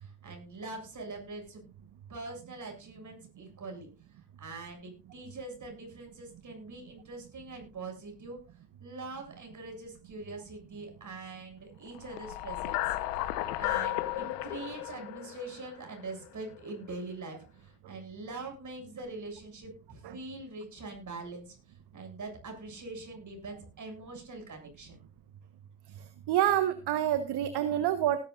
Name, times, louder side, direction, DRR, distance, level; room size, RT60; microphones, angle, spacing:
voice 1, 0.0-1.6 2.1-8.4 8.8-13.0 13.6-25.0, right 3 dB, 40° right, 3 dB, 7.3 m, -43 dB
sound 1, 12.0-16.3, left 16 dB, 85° left, 1.2 m, -34 dB
voice 2, 26.3-28.2, right 11 dB, 60° right, 11 dB, 1.3 m, -27 dB
18.5 x 12.0 x 2.6 m, 0.31 s
hypercardioid pair, 60°, 45 cm